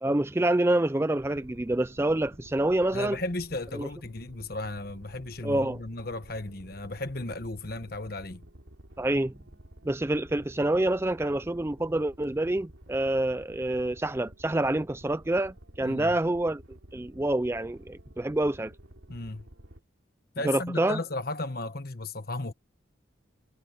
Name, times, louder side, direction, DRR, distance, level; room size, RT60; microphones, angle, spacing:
voice 1, 0.0-3.2 3.7-3.9 5.4-5.8 9.0-9.4 9.8-16.6 16.9-18.7 20.4-21.0, right 1 dB, 10° right, 0.4 m, -27 dB
sound 1, 1.2-19.8, right 1 dB, 85° right, 3.2 m, -51 dB
voice 2, 2.9-8.5 15.8-16.1 19.1-19.5 20.3-22.5, left 2 dB, 50° left, 1.4 m, -35 dB
head